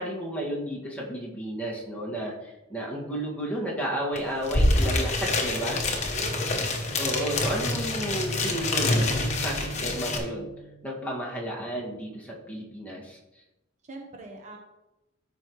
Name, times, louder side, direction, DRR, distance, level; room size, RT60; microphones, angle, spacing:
voice 1, 0.0-6.0 7.0-10.5 10.8-13.2, equal, 10° left, -4 dB, 1.9 m, -32 dB
sound 1, 4.2-4.3 4.4-10.2, left 2 dB, 35° left, 1.2 m, -26 dB
voice 2, 5.0-5.8 6.1-6.6 13.9-14.6, right 2 dB, 40° right, 1 dB, 1.0 m, -42 dB
Bowed string instrument, 6.6-11.5, right 4 dB, 70° right, 2.4 m, -41 dB
13.5 x 5.3 x 3.1 m, 0.98 s
head